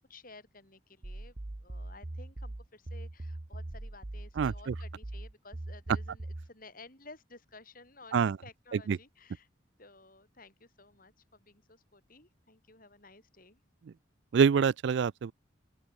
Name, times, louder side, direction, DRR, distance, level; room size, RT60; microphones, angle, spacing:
voice 1, 0.1-1.3 1.6-9.5 9.8-13.6, left 3 dB, 45° left, 6.4 m, -54 dB
sound 1, 1.0-6.5, right 1 dB, 35° right, 0.8 m, -41 dB
voice 2, 4.4-4.7 8.1-8.4 8.7-9.0 14.3-15.3, right 6 dB, 60° right, 0.3 m, -26 dB
open air
head